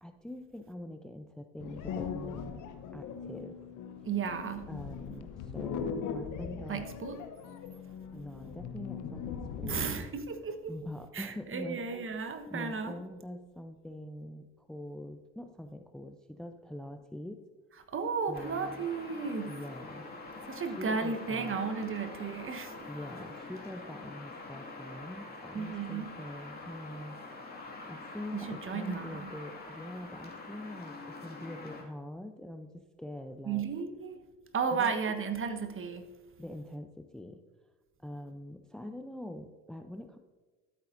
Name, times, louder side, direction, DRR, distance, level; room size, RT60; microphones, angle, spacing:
voice 1, 0.0-2.6 2.9-3.6 4.7-6.9 8.1-10.1 10.7-11.8 12.5-17.4 18.3-18.9 19.5-20.1 20.7-21.6 22.9-27.2 27.9-33.7 34.7-34.9 36.4-37.4 38.0-40.2, left 1 dB, ahead, 7 dB, 0.5 m, -44 dB
sound 1, 1.6-10.1, left 6 dB, 55° left, 1.0 m, -40 dB
voice 2, 4.0-4.7 6.7-7.2 9.6-10.7 11.1-13.0 17.9-19.5 20.5-22.9 25.5-26.1 28.3-29.3 33.5-34.2 34.5-36.0, right 5 dB, 35° right, 8 dB, 1.2 m, -34 dB
sound 2, 18.3-31.8, left 3 dB, 25° left, 2.5 m, -45 dB
13.5 x 8.2 x 2.6 m, 1.3 s
hypercardioid pair, 60°, 37 cm